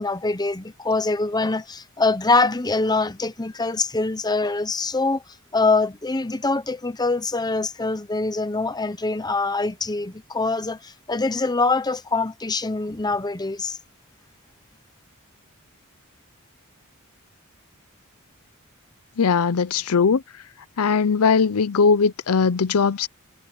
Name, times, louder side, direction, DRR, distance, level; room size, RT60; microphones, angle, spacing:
voice 1, 0.0-5.2 5.5-13.8, left 3 dB, 20° left, 0.9 m, -24 dB
voice 2, 19.2-20.2 20.8-23.1, left 5 dB, 80° left, 0.6 m, -19 dB
head